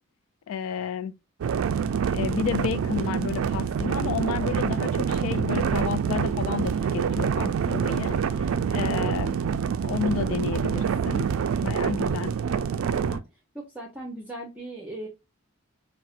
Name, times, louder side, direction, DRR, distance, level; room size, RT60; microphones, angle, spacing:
voice 1, 0.5-1.1 2.1-9.4 9.8-11.3 11.6-12.3, left 7 dB, 75° left, 0.3 m, -31 dB
sound 1, 1.4-13.2, right 7 dB, 80° right, 0.3 m, -26 dB
voice 2, 12.8-13.2 13.5-15.1, right 1 dB, 5° right, 0.7 m, -38 dB
4.1 x 2.1 x 2.4 m
head